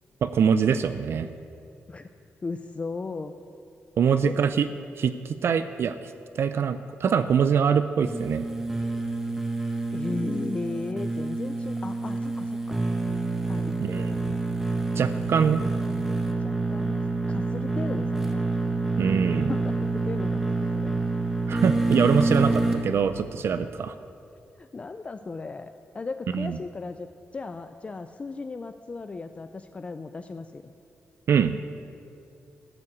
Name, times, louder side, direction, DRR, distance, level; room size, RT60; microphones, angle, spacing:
voice 1, 0.2-1.3 4.0-4.7 5.0-8.4 13.8-14.3 15.0-15.6 19.0-19.5 21.5-23.9 26.3-26.6 31.3-31.5, right 7 dB, 60° right, 11 dB, 0.4 m, -24 dB
voice 2, 2.4-3.3 4.1-4.4 9.9-12.8 13.5-14.2 16.1-18.5 19.0-19.1 19.5-20.9 22.4-22.5 24.6-30.7, left 3 dB, 25° left, 8 dB, 0.4 m, -36 dB
sound 1, 8.0-22.8, right 3 dB, 5° right, 1.2 m, -27 dB
14.0 x 5.9 x 7.9 m, 2.6 s
wide cardioid pair, 125°, 5 cm